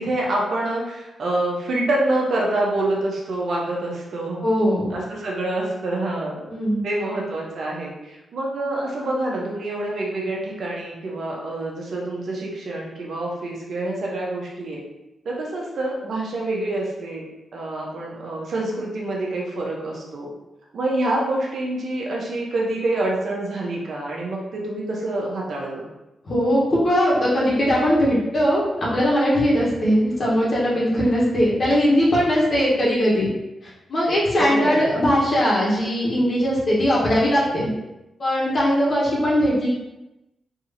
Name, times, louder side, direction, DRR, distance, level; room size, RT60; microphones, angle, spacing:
voice 1, 0.0-4.4 4.9-6.4 6.8-14.8 15.2-17.2 17.5-20.3 20.7-25.9 34.4-34.9, right 2 dB, 70° right, -2 dB, 0.9 m, -26 dB
voice 2, 4.4-4.8 6.5-6.8 26.2-33.3 33.6-37.7 38.2-39.7, equal, 55° left, -7 dB, 1.2 m, -20 dB
3.7 x 2.8 x 2.8 m, 0.96 s
supercardioid pair, 50°, 0 cm